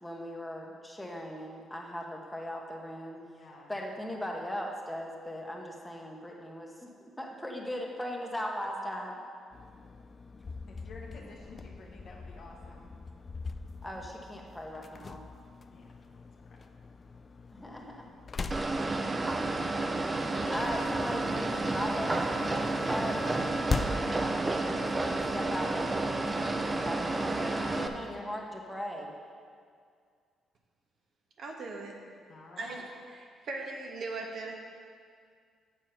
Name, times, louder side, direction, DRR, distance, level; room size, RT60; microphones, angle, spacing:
voice 1, 0.0-3.2 3.7-9.2 13.8-15.2 17.5-18.0 20.5-23.2 24.0-29.1, equal, 5° left, 0 dB, 1.2 m, -39 dB
voice 2, 3.2-3.7 10.7-13.0 15.7-15.9 32.3-32.8, left 3 dB, 65° left, -3 dB, 1.2 m, -50 dB
sound 1, 9.5-28.2, left 4 dB, 35° left, 0.4 m, -42 dB
sound 2, 18.5-27.9, right 2 dB, 25° right, 0.6 m, -31 dB
voice 3, 31.4-32.0 32.6-32.8 33.1-34.5, right 3 dB, 60° right, 1 dB, 1.3 m, -39 dB
7.1 x 6.9 x 5.7 m, 2.1 s
cardioid pair, 90°, 0 cm